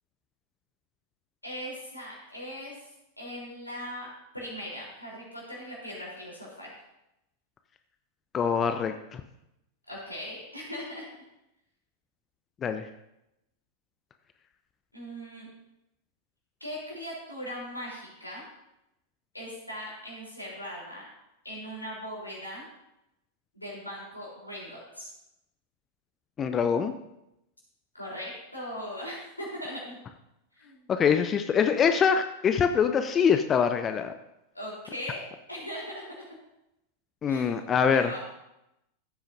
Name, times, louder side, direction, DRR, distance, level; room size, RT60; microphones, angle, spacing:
voice 1, 1.4-2.8 3.2-4.1 4.3-6.7 9.9-11.0 14.9-15.5 16.6-18.4 19.3-21.1 21.4-22.6 23.5-25.1 27.9-30.0 30.6-30.8 34.5-35.2 35.5-36.0 37.3-38.2, equal, 85° left, -4 dB, 3.8 m, -39 dB
voice 2, 8.3-9.2 12.6-12.9 26.4-26.9 30.9-34.1 37.2-38.1, left 7 dB, 25° left, 9 dB, 0.5 m, -24 dB
14.5 x 8.7 x 2.7 m, 0.86 s
figure-of-eight pair, 90°, 0 cm